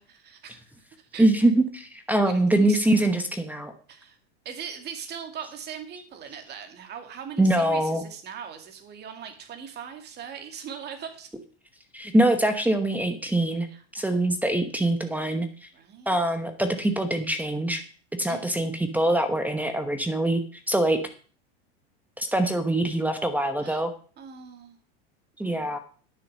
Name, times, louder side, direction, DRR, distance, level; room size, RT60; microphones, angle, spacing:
voice 1, 0.0-1.3 2.2-2.8 3.9-4.2 4.4-11.3 13.7-14.3 15.7-16.2 18.3-18.6 23.6-23.8 24.2-24.8 25.4-25.8, right 7 dB, 30° right, 5 dB, 2.2 m, -40 dB
voice 2, 1.2-3.7 7.4-8.0 11.9-13.7 13.9-15.5 16.1-17.8 18.2-20.4 20.7-21.0 22.2-23.9 25.4-25.8, right 1 dB, 5° right, 8 dB, 1.0 m, -23 dB
10.5 x 6.7 x 6.5 m, 0.42 s
supercardioid pair, 135°, 32 cm